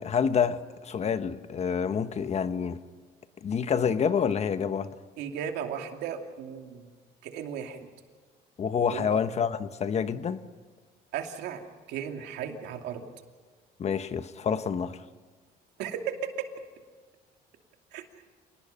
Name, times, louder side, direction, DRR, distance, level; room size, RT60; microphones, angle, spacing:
voice 1, 0.0-2.8 3.4-4.9 8.6-10.4 13.8-15.0, left 7 dB, 40° left, 11 dB, 1.2 m, -28 dB
voice 2, 5.2-6.9 7.2-7.9 8.9-9.2 11.1-11.6 11.9-13.1 15.8-16.3 17.9-18.0, right 8 dB, 85° right, 4 dB, 2.7 m, -35 dB
27.5 x 19.5 x 5.7 m, 1.5 s
cardioid pair, 110°, 17 cm